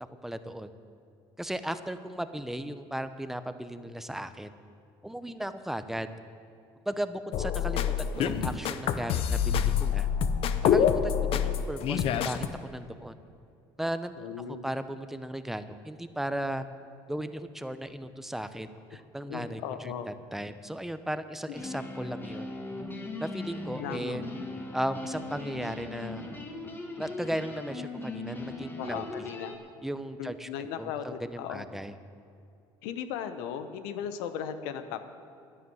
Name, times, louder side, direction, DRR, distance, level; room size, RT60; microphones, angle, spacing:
voice 1, 0.2-0.7 1.4-4.5 5.0-6.1 6.9-10.1 10.6-12.4 12.7-13.1 13.8-16.7 17.1-22.5 23.2-24.2 24.7-26.2 27.0-29.0 29.8-30.5 30.8-32.0, right 1 dB, 5° right, 11 dB, 0.8 m, -36 dB
sound 1, 7.3-12.5, left 8 dB, 60° left, 0.8 m, -26 dB
voice 2, 14.2-14.6 19.3-20.1 23.8-24.2 28.8-29.5 30.2-31.7 32.8-35.1, left 8 dB, 85° left, 9 dB, 0.9 m, -37 dB
sound 2, 21.5-29.6, left 2 dB, 20° left, 2.0 m, -39 dB
11.0 x 10.0 x 7.9 m, 2.5 s
supercardioid pair, 90°, 11 cm